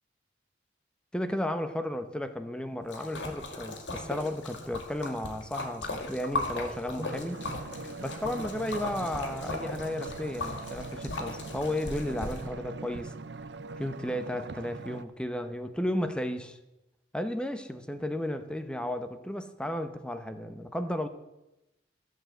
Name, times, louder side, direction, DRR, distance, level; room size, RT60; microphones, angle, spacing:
voice 1, 1.1-7.4 8.0-13.1 13.8-16.6 17.1-21.1, left 1 dB, 5° left, 9 dB, 0.8 m, -34 dB
Splash splatter, 2.9-12.4, left 2 dB, 80° left, 2.1 m, -37 dB
sound 1, 7.0-15.0, right 3 dB, 65° right, 0.6 m, -42 dB
14.5 x 7.6 x 7.8 m, 0.96 s
head